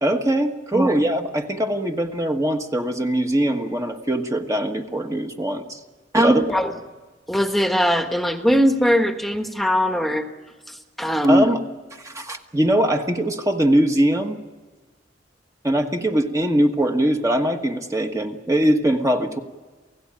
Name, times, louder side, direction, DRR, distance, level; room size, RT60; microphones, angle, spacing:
voice 1, 0.0-5.8 6.1-6.5 11.2-11.6 12.0-14.4 15.6-19.4, right 1 dB, 20° right, 4 dB, 1.4 m, -21 dB
voice 2, 7.3-10.2 10.7-11.3, equal, ahead, 5 dB, 1.4 m, -21 dB
29.0 x 17.0 x 8.9 m, 1.3 s
head